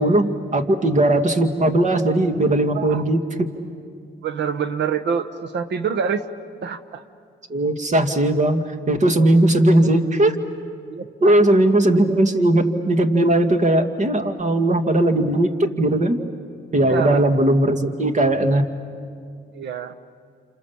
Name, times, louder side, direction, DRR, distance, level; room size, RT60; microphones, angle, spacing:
voice 1, 0.0-3.5 7.5-10.4 11.2-16.2 16.7-18.7, right 1 dB, 35° right, 7 dB, 2.0 m, -18 dB
voice 2, 4.2-6.2 6.6-7.0 10.9-11.4 16.8-17.2 19.5-19.9, right 6 dB, 65° right, 10 dB, 1.2 m, -26 dB
28.5 x 27.5 x 7.2 m, 2.2 s
cardioid pair, 90°, 20 cm